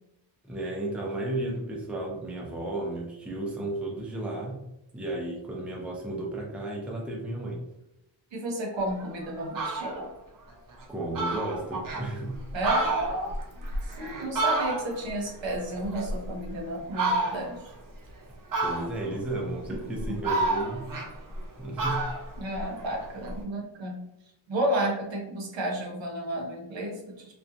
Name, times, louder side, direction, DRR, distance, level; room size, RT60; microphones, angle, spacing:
voice 1, 0.4-4.6 4.9-7.6 10.9-12.4 18.6-20.9 21.6-22.0, right 2 dB, 5° right, -2 dB, 0.5 m, -33 dB
voice 2, 8.3-10.1 12.5-13.3 13.8-17.6 22.4-24.0 24.5-27.3, right 1 dB, 75° right, 1 dB, 0.8 m, -32 dB
Fowl, 8.9-9.0 9.4-10.0 10.5-10.6 10.8-10.9 11.1-12.0 12.5-15.1 15.5-16.5 16.9-17.6 18.5-19.2 19.7-21.5 21.8-23.4, right 2 dB, 45° right, 0.6 m, -30 dB
2.7 x 2.3 x 2.4 m, 0.87 s
wide cardioid pair, 115°, 45 cm